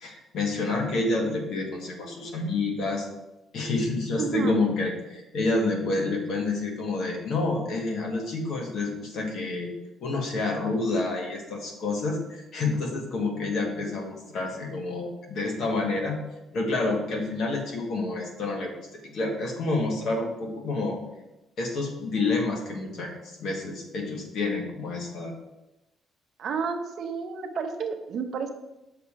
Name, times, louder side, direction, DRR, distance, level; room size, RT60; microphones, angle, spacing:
voice 1, 0.0-3.1 3.5-9.7 10.0-16.2 16.5-21.0 21.6-25.3, left 3 dB, 55° left, 1 dB, 1.5 m, -28 dB
voice 2, 4.2-4.6 26.4-28.5, right 5 dB, 50° right, 5 dB, 0.7 m, -31 dB
6.8 x 4.3 x 5.0 m, 0.94 s
cardioid pair, 170°, 0 cm